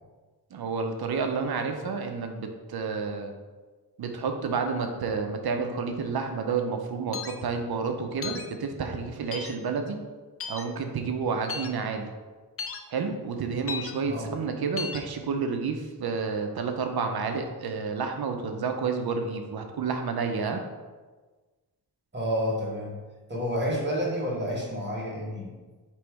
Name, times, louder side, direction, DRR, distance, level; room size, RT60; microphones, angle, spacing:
voice 1, 0.5-3.3 4.0-10.0 10.5-12.1 12.9-20.6, right 5 dB, 65° right, 5 dB, 0.6 m, -30 dB
sound 1, 7.1-7.4 8.2-8.5 9.3-9.5 10.4-10.6 11.5-11.7 12.6-12.8 13.7-13.9 14.8-15.0, left 5 dB, 35° left, 0.4 m, -34 dB
voice 2, 22.1-23.0 23.3-25.5, equal, 25° right, -3 dB, 1.3 m, -29 dB
3.2 x 3.0 x 4.6 m, 1.3 s
cardioid pair, 70°, 41 cm